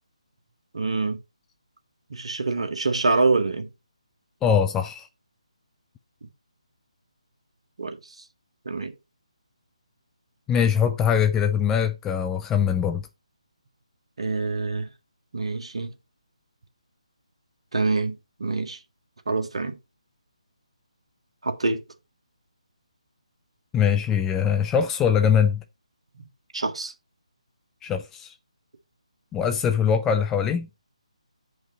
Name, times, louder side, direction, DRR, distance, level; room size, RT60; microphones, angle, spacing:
voice 1, 0.7-1.2 2.1-3.7 7.8-8.0 8.6-8.9 14.2-14.9 15.3-15.9 17.7-18.8 19.3-19.7 21.4-21.8 26.5-26.9, right 3 dB, 55° right, 1.5 m, -25 dB
voice 2, 4.4-5.1 10.5-13.1 23.7-25.6 27.8-28.3 29.3-30.7, left 7 dB, 10° left, 0.3 m, -22 dB
8.8 x 5.3 x 4.2 m
figure-of-eight pair, 150°, 4 cm